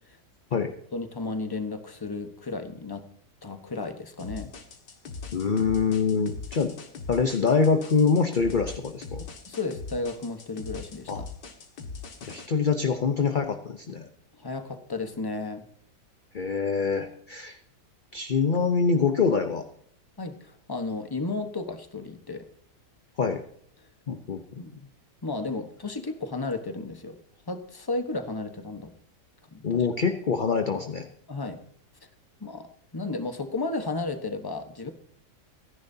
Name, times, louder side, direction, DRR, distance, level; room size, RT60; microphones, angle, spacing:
voice 1, 0.9-3.1 3.4-4.5 9.5-11.3 14.4-15.6 20.2-22.5 24.6-24.7 25.2-27.2 27.5-28.9 29.5-29.9 31.3-31.6 32.4-32.7 32.9-34.9, left 3 dB, 15° left, 7 dB, 0.9 m, -33 dB
sound 1, 4.2-12.5, left 4 dB, 75° left, 2.3 m, -40 dB
voice 2, 5.3-6.8 7.1-9.2 11.1-11.2 12.2-14.1 16.3-17.6 18.1-19.6 23.2-23.4 24.1-24.6 29.6-31.1, left 5 dB, 45° left, 6 dB, 0.6 m, -25 dB
27.0 x 10.5 x 2.8 m, 0.65 s
omnidirectional pair, 1.8 m